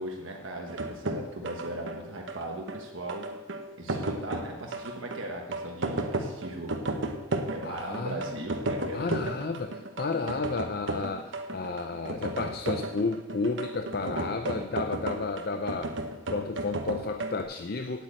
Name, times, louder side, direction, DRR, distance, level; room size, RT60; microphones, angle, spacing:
voice 1, 0.0-3.3 3.8-6.8 7.5-9.3, right 1 dB, 90° right, 0 dB, 1.3 m, -38 dB
sound 1, 0.7-17.4, right 2 dB, 70° right, 1.1 m, -34 dB
voice 2, 7.6-8.2 8.9-15.9 16.3-18.0, left 3 dB, 55° left, 7 dB, 0.6 m, -32 dB
9.2 x 8.5 x 8.9 m, 1.2 s
head